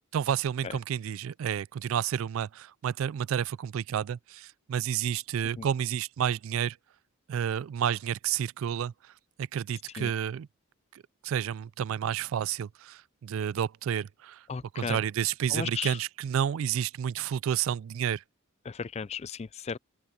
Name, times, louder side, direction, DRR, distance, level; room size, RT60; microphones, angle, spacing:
voice 1, 0.1-6.8 7.3-9.1 9.4-10.5 10.9-14.5 14.7-18.2, right 9 dB, 65° right, 0.3 m, -30 dB
voice 2, 14.5-15.0 15.5-16.0 18.6-19.8, left 6 dB, 30° left, 0.4 m, -35 dB
open air
head